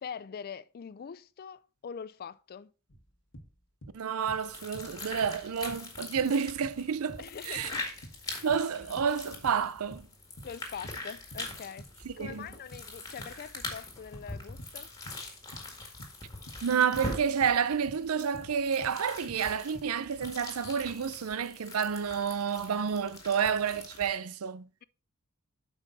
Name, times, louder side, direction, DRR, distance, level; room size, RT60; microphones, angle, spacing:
voice 1, 0.0-2.7 7.2-7.9 10.4-11.9 12.2-14.9, left 7 dB, 45° left, 0.4 m, -43 dB
sound 1, 2.9-4.0 4.3-5.4 5.7-11.5 11.8-19.0 19.3-20.4, equal, 60° left, 1.4 m, -49 dB
voice 2, 3.9-7.7 8.4-10.1 12.0-12.5 16.6-24.7, right 7 dB, 80° right, 0.5 m, -30 dB
sound 2, 4.2-24.2, left 2 dB, 15° left, 1.9 m, -43 dB
8.2 x 5.5 x 4.0 m
head